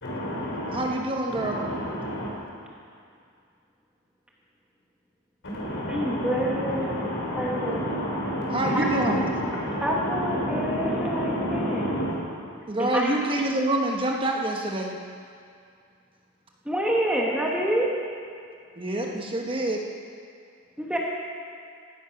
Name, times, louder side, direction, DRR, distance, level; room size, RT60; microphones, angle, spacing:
voice 1, 0.0-0.9 1.3-2.3 5.5-12.1, equal, 55° left, -4 dB, 4.3 m, -29 dB
voice 2, 0.7-1.6 8.5-9.3 12.7-15.0 18.8-19.8, right 1 dB, 25° right, 0 dB, 1.1 m, -26 dB
voice 3, 5.9-7.0 7.4-7.9 8.7-8.8 9.8-12.0 12.8-13.1 16.6-17.9 19.0-19.1 20.8-21.0, right 1 dB, 5° right, -3 dB, 1.3 m, -27 dB
16.0 x 10.0 x 5.8 m, 2.3 s
head